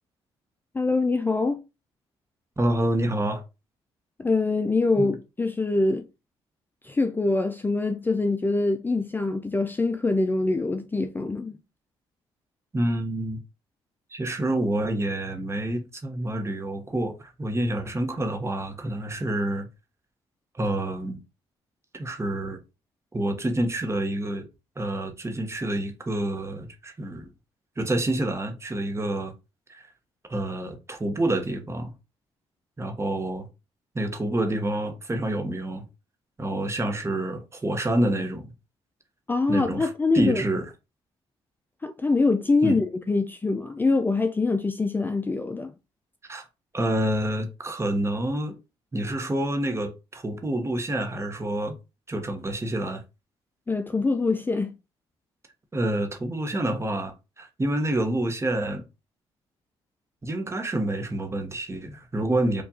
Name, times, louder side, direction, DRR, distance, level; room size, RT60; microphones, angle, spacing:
voice 1, 0.7-1.6 4.2-6.0 6.8-11.5 39.3-40.4 41.8-45.7 53.7-54.7, left 3 dB, 15° left, 0.4 m, -24 dB
voice 2, 2.6-3.4 5.0-5.1 12.7-13.4 14.1-19.7 20.5-21.2 21.9-22.6 23.1-24.5 24.8-27.3 27.8-29.3 29.7-29.9 30.3-31.9 32.8-33.5 33.9-35.9 36.4-38.5 39.5-40.7 42.6-42.8 46.3-46.5 46.7-48.5 48.9-51.8 52.1-53.0 55.7-58.8 60.2-62.6, right 1 dB, 25° right, 1.0 m, -28 dB
4.4 x 2.4 x 2.8 m
supercardioid pair, 60°, 11 cm